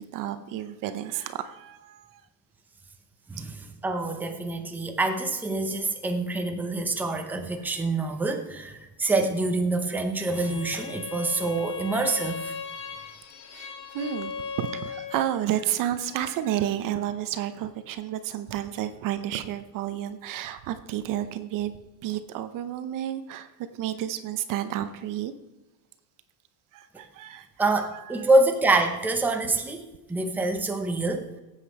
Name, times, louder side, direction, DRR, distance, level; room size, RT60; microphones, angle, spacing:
voice 1, 0.0-2.2 13.5-21.7 22.0-23.5 23.7-25.3 26.7-27.5, right 11 dB, 50° right, 11 dB, 0.8 m, -31 dB
voice 2, 3.3-12.5 27.6-31.4, right 2 dB, 5° right, 4 dB, 0.8 m, -26 dB
Bowed string instrument, 10.2-15.4, left 5 dB, 60° left, 2.0 m, -37 dB
17.0 x 8.4 x 4.8 m, 1.0 s
cardioid pair, 160°, 42 cm